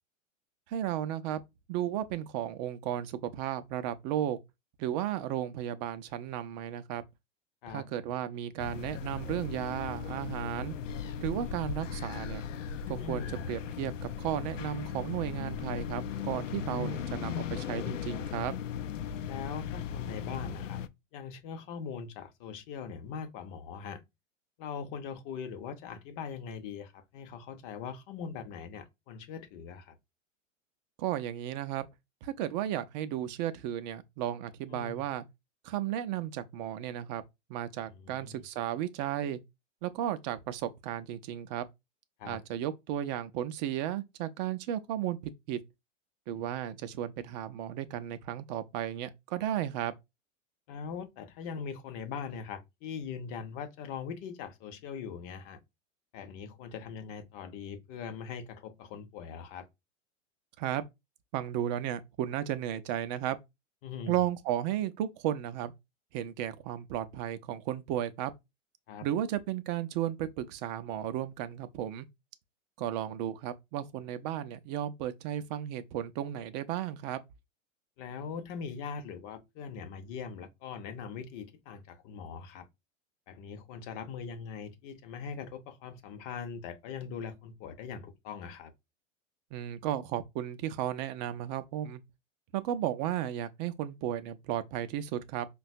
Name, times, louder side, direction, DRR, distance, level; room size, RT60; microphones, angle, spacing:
voice 1, 0.7-1.4 1.7-4.4 4.8-7.0 7.7-10.7 11.2-12.4 12.9-18.5 31.0-31.9 32.2-35.2 35.6-37.2 37.5-39.4 39.8-41.7 42.2-45.6 46.3-49.9 60.6-60.8 61.3-63.4 64.1-65.7 66.1-68.3 69.0-72.1 72.8-77.2 89.5-92.0 92.5-95.5, right 11 dB, 35° right, 0.5 m, -34 dB
sound 1, 8.6-20.9, left 7 dB, 75° left, 0.5 m, -37 dB
voice 2, 13.0-13.5 19.3-20.8 21.1-24.0 24.6-30.0 34.7-35.0 37.9-38.4 42.2-42.4 50.7-55.6 56.1-59.7 63.8-64.1 68.9-69.1 78.0-82.7 83.3-88.7, left 6 dB, 35° left, 0.7 m, -41 dB
5.4 x 2.3 x 2.6 m
figure-of-eight pair, 100°, 38 cm